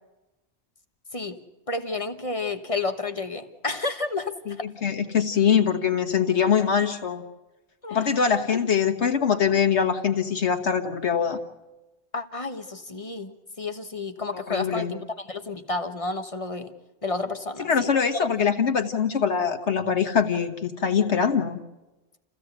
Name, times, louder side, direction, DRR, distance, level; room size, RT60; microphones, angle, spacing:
voice 1, 1.7-4.7 7.8-8.1 12.1-16.7 17.0-17.7, left 3 dB, 30° left, 7 dB, 1.2 m, -31 dB
voice 2, 4.5-7.2 7.9-11.4 14.3-14.9 17.6-21.6, left 7 dB, 85° left, 5 dB, 1.7 m, -23 dB
28.5 x 16.0 x 8.1 m, 1.1 s
omnidirectional pair, 1.1 m